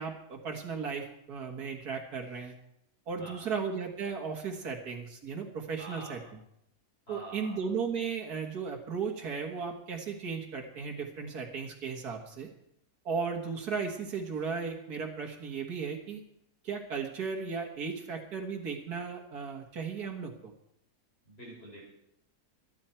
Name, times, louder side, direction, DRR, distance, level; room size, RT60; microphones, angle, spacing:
voice 1, 0.0-2.5 3.1-6.2 7.1-12.5 13.1-16.2 16.6-20.5, right 5 dB, 85° right, 1 dB, 2.1 m, -36 dB
voice 2, 3.2-3.5 5.8-6.2 7.1-7.5 21.3-21.8, right 1 dB, 40° left, -3 dB, 5.4 m, -46 dB
24.0 x 9.2 x 4.5 m, 0.78 s
omnidirectional pair, 1.6 m